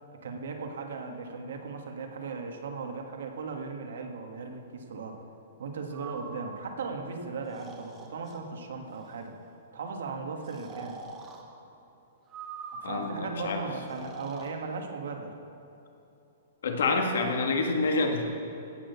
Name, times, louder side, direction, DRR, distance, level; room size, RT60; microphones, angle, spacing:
voice 1, 0.1-5.2 5.6-9.3 9.7-11.0 12.8-15.3, right 4 dB, 70° right, 4 dB, 1.6 m, -37 dB
Breathing, 5.9-6.4 7.4-8.4 8.9-9.3 10.4-11.4 12.3-13.1 13.8-14.5, right 5 dB, 15° right, 1.1 m, -44 dB
voice 2, 12.8-13.6 16.6-18.2, left 3 dB, 75° left, 3 dB, 1.8 m, -27 dB
16.5 x 6.4 x 6.8 m, 2.9 s
hypercardioid pair, 175°, 0 cm